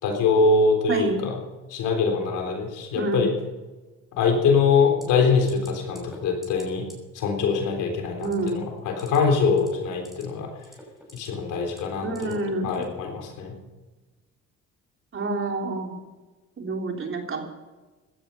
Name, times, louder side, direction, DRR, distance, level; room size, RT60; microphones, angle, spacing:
voice 1, 0.0-1.3 1.7-3.3 4.1-6.8 7.2-10.5 11.1-12.4 12.6-13.5, left 4 dB, 90° left, 3 dB, 3.7 m, -23 dB
voice 2, 0.9-1.2 2.9-3.2 8.2-8.6 12.0-12.8 15.1-16.0 16.6-17.4, right 2 dB, 45° right, 2 dB, 3.5 m, -28 dB
sound 1, 5.0-5.2 5.5-5.7 6.0-6.2 6.4-6.6 6.9-7.0 8.2-8.5 8.9-9.2 9.5-10.2 10.6-11.3 11.7-12.3 12.7-12.9, equal, ahead, 5.9 m, -46 dB
16.0 x 12.5 x 5.6 m, 1.2 s
cardioid pair, 90°, 30 cm